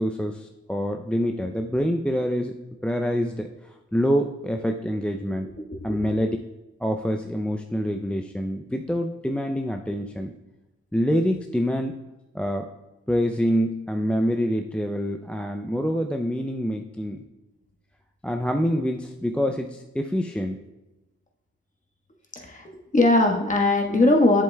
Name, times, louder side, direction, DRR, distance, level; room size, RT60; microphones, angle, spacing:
voice 1, 0.0-2.5 2.8-5.5 5.8-6.4 6.8-10.3 10.9-12.0 12.3-12.7 13.1-17.2 18.2-20.6, equal, 5° left, 3 dB, 0.4 m, -26 dB
voice 2, 22.3-24.4, left 2 dB, 25° left, 0 dB, 1.3 m, -20 dB
7.5 x 7.4 x 2.3 m, 1.0 s
cardioid pair, 55°, 29 cm